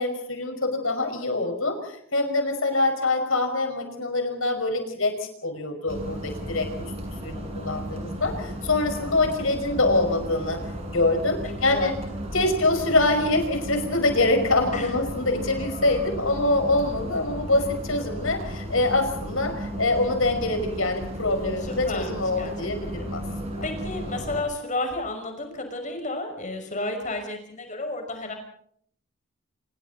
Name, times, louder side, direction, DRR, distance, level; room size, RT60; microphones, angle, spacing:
voice 1, 0.0-6.9 7.2-10.6 10.9-12.0 12.3-23.2, left 2 dB, 70° left, 6 dB, 5.3 m, -25 dB
sound 1, 5.9-24.4, equal, 30° right, 8.0 m, -34 dB
voice 2, 11.4-11.9 14.7-14.9 21.6-22.5 22.8-22.9 23.6-28.3, left 2 dB, 35° left, 4 dB, 5.9 m, -32 dB
30.0 x 27.0 x 4.1 m, 0.63 s
head